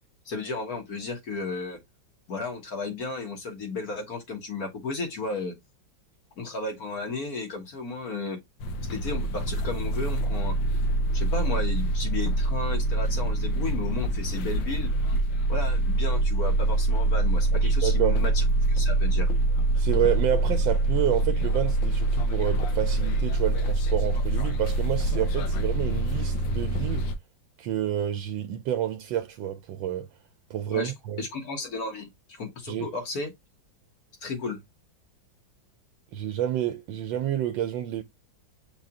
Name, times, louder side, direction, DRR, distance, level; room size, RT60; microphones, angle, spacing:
voice 1, 0.3-1.8 2.3-5.5 6.4-8.4 8.9-10.5 11.1-14.9 15.5-19.3 30.7-30.9 31.2-33.3 34.2-34.6, left 3 dB, 55° left, 1.6 m, -34 dB
sound 1, 8.6-27.1, right 2 dB, 80° left, 1.5 m, -25 dB
voice 2, 17.6-18.2 19.8-27.1 27.6-30.1 30.5-31.2 32.7-32.9 36.1-38.0, right 11 dB, 80° right, 1.3 m, -29 dB
5.8 x 2.4 x 3.5 m
omnidirectional pair, 2.0 m